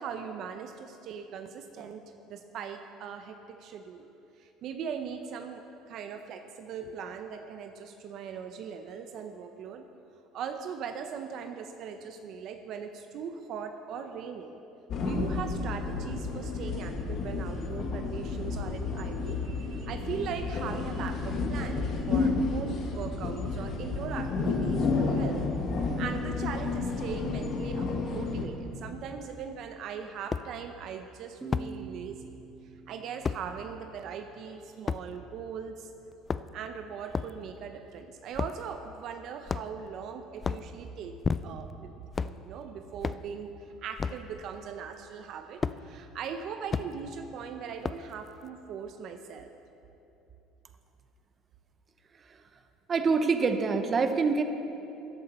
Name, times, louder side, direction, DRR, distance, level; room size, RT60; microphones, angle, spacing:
voice 1, 0.0-4.1 4.4-9.8 10.3-14.6 15.0-25.4 25.8-32.3 32.9-35.9 36.5-41.9 42.2-43.5 43.8-49.5, right 7 dB, 55° right, 6 dB, 0.7 m, -40 dB
sound 1, 14.9-28.4, left 3 dB, 50° left, 1.7 m, -31 dB
sound 2, 29.3-29.4 30.3-30.5 31.5-31.7 33.2-33.4 34.9-35.0 36.1-36.7 37.1-37.4 38.3-38.6 39.5-39.9 40.4-40.7 41.2-41.7 42.1-42.4 43.0-43.3 44.0-44.2 45.6-45.8 46.7-46.9 47.8-48.1, left 5 dB, 25° left, 0.3 m, -31 dB
sound 3, 31.4-34.8, right 4 dB, 15° right, 1.6 m, -46 dB
voice 2, 52.9-54.4, right 4 dB, 30° right, 8 dB, 0.8 m, -25 dB
13.5 x 11.0 x 4.3 m, 2.8 s
cardioid pair, 115°, 0 cm